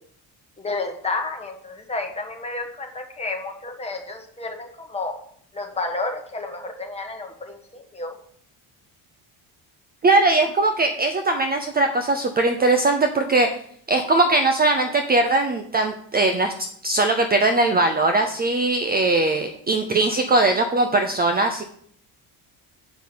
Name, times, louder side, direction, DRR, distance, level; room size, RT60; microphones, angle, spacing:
voice 1, 0.6-5.1 5.5-8.2, left 3 dB, 15° left, 2 dB, 1.5 m, -31 dB
voice 2, 10.0-13.5 13.9-16.5 16.8-21.6, right 2 dB, 25° right, 6 dB, 0.6 m, -20 dB
8.1 x 5.4 x 6.7 m, 0.64 s
cardioid pair, 150°, 41 cm